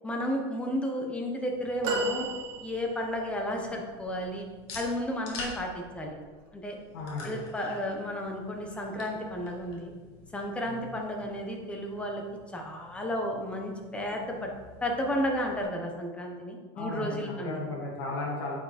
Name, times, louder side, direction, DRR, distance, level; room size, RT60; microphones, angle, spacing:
voice 1, 0.0-2.3 2.6-4.5 4.7-6.2 6.5-6.8 7.2-9.9 10.3-12.2 12.5-14.5 14.8-17.6, equal, 10° left, 1 dB, 1.1 m, -33 dB
sound 1, 1.4-15.6, left 3 dB, 50° left, 2.2 m, -49 dB
sound 2, 1.8-3.2 4.0-4.1, right 2 dB, 55° right, 1.7 m, -32 dB
voice 2, 6.9-7.4 10.7-10.9 16.8-18.5, left 2 dB, 70° left, -4 dB, 1.8 m, -35 dB
8.4 x 5.0 x 4.3 m, 1.4 s
supercardioid pair, 145°, 13 cm